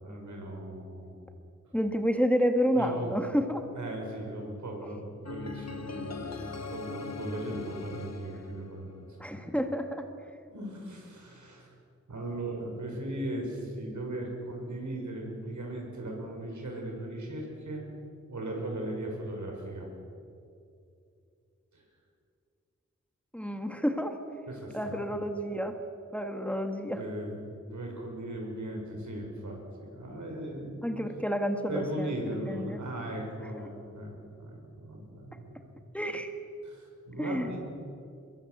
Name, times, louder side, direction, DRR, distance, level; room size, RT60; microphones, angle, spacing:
voice 1, 0.0-1.3 2.7-3.1 3.7-9.4 10.5-11.7 12.1-17.8 18.3-19.9 21.7-21.8 24.5-25.0 26.9-30.9 31.7-35.7 36.0-36.1 36.6-37.6, right 1 dB, 80° right, 0 dB, 6.7 m, -38 dB
voice 2, 1.7-3.6 9.2-10.0 23.3-24.1 24.7-25.7 26.1-27.0 30.8-32.2 32.5-32.8 33.6-33.7 35.9-36.3 37.2-37.5, equal, 5° left, 5 dB, 1.9 m, -29 dB
sound 1, 5.2-9.3, left 4 dB, 60° left, 1.8 m, -41 dB
24.0 x 22.0 x 8.0 m, 2.5 s
wide cardioid pair, 90°, 29 cm